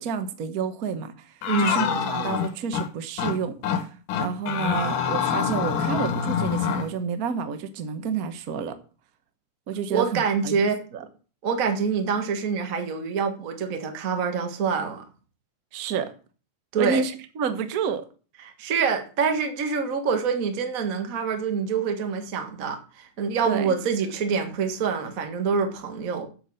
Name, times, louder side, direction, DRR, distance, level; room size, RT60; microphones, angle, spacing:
voice 1, 0.0-3.9 4.2-8.8 9.7-11.1 15.7-16.1 16.8-18.1 23.5-23.7, right 6 dB, 80° right, 0.8 m, -30 dB
sound 1, 1.4-2.9 3.2-3.4 3.6-3.8 4.1-6.9, left 7 dB, 85° left, 2.8 m, -25 dB
voice 2, 1.5-1.8 9.9-10.8 11.4-15.0 16.7-17.0 18.6-26.3, right 5 dB, 35° right, 1.4 m, -26 dB
9.7 x 7.9 x 6.4 m
omnidirectional pair, 3.6 m